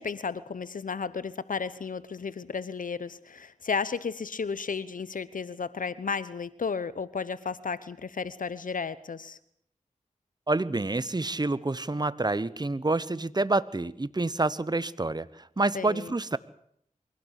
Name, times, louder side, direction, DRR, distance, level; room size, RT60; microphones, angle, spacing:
voice 1, 0.0-9.4 15.7-16.1, left 5 dB, 75° left, 15 dB, 1.0 m, -33 dB
voice 2, 10.5-16.4, right 2 dB, 30° right, 17 dB, 1.1 m, -28 dB
23.5 x 17.0 x 8.3 m, 0.68 s
cardioid pair, 45°, 14 cm